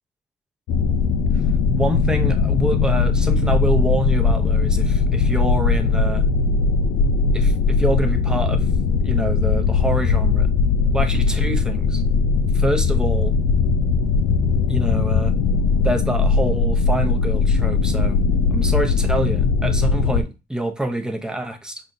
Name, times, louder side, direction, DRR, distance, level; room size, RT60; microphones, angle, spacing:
sound 1, 0.7-20.2, left 4 dB, 85° left, 0.5 m, -19 dB
voice 1, 1.7-6.2 7.3-8.7 9.0-10.5 10.9-12.0 12.5-13.3 14.7-15.4 15.8-18.2 18.5-21.8, right 1 dB, 5° right, 0.7 m, -26 dB
5.4 x 2.4 x 2.6 m
cardioid pair, 90°, 20 cm